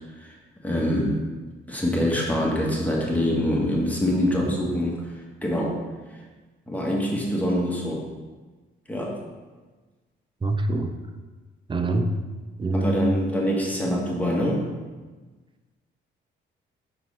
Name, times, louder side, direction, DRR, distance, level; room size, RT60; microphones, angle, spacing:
voice 1, 0.6-1.2 1.7-5.8 6.7-8.0 8.9-9.2 12.7-14.6, equal, 5° left, -3 dB, 1.6 m, -24 dB
voice 2, 10.4-10.9 11.7-12.1 12.6-13.0, right 2 dB, 25° right, 6 dB, 0.7 m, -25 dB
5.8 x 5.1 x 4.8 m, 1.3 s
cardioid pair, 90°, 20 cm